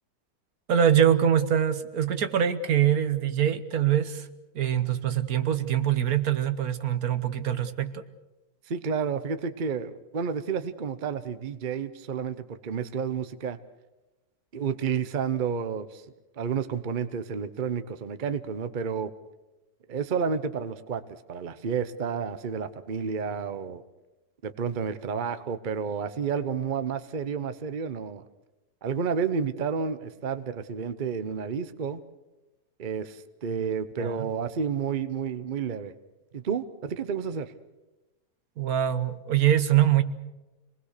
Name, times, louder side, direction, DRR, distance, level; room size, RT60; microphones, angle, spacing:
voice 1, 0.7-4.3 4.5-8.0 34.0-34.3 38.6-40.0, right 10 dB, 70° right, 11 dB, 1.5 m, -24 dB
voice 2, 8.7-13.6 14.5-16.0 16.4-19.1 19.9-21.0 21.3-23.8 24.4-28.2 28.8-32.0 32.8-35.9 36.3-37.5, right 6 dB, 40° right, 12 dB, 0.9 m, -30 dB
26.5 x 20.0 x 6.7 m, 1.0 s
omnidirectional pair, 1.6 m